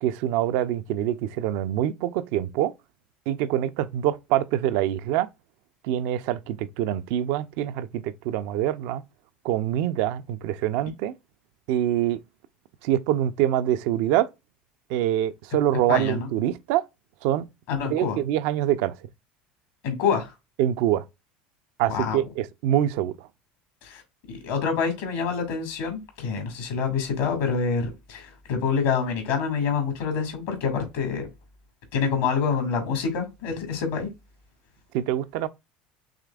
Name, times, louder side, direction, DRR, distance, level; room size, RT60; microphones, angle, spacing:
voice 1, 0.0-2.7 3.3-5.3 5.8-9.0 9.4-11.1 11.7-12.2 12.8-14.3 14.9-16.8 17.2-17.5 17.9-19.0 20.6-21.0 21.8-23.3 34.9-35.5, right 12 dB, 70° right, 0.4 m, -25 dB
voice 2, 15.9-16.3 17.7-18.2 19.8-20.3 21.9-22.2 23.8-24.0 24.3-31.3 31.9-34.1, left 6 dB, 75° left, 2.0 m, -26 dB
5.0 x 3.3 x 2.3 m
hypercardioid pair, 85°, 5 cm